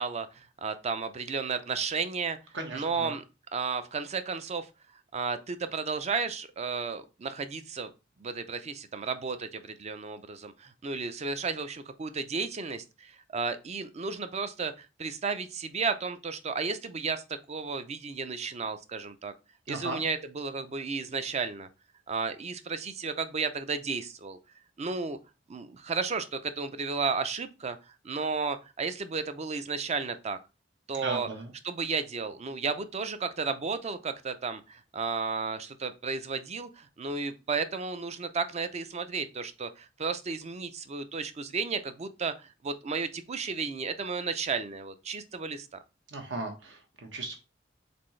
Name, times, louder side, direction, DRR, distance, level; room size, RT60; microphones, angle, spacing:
voice 1, 0.0-2.4 2.7-3.2 3.5-4.7 5.1-7.9 8.2-17.2 17.5-19.3 19.7-21.7 22.1-24.4 24.8-25.2 25.5-27.8 28.0-30.4 30.9-31.3 31.6-45.7, right 4 dB, 35° right, 0.4 m, -33 dB
voice 2, 2.5-3.1 19.7-20.0 30.9-31.5 46.1-47.4, right 2 dB, 70° right, 1.2 m, -37 dB
4.3 x 3.8 x 3.1 m
head